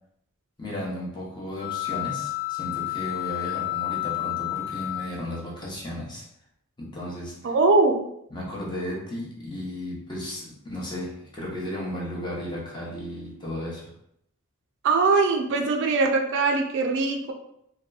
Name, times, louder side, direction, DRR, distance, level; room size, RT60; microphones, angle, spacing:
voice 1, 0.6-6.2 6.8-7.5 8.3-13.9, left 1 dB, 20° left, -4 dB, 0.6 m, -34 dB
sound 1, 1.5-5.6, left 18 dB, 60° left, 0.7 m, -31 dB
voice 2, 7.4-8.0 14.8-17.3, right 3 dB, 55° right, 2 dB, 0.3 m, -21 dB
2.8 x 2.2 x 2.3 m, 0.75 s
head